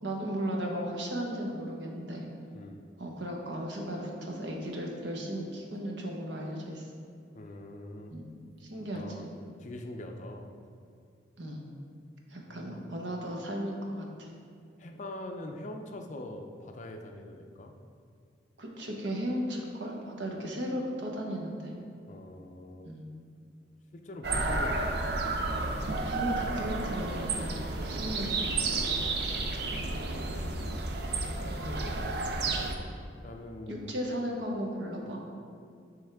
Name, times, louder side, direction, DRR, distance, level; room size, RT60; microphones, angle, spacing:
voice 1, 0.0-2.3 3.0-6.9 8.1-8.3 8.6-9.3 11.4-11.6 12.3-14.3 18.6-21.7 22.8-23.1 26.0-28.7 30.2-30.4 31.6-31.8 33.7-35.2, equal, 75° right, 0 dB, 1.0 m, -36 dB
voice 2, 7.3-8.1 8.9-9.3 9.6-10.5 12.5-12.8 14.8-17.7 22.1-22.9 23.9-25.2 29.0-30.4 31.0-31.4 31.6-32.9 33.2-33.9, left 1 dB, 40° left, 4 dB, 0.4 m, -44 dB
sound 1, 24.2-32.7, right 3 dB, 55° right, 0.5 m, -31 dB
9.9 x 3.5 x 3.4 m, 2.4 s
head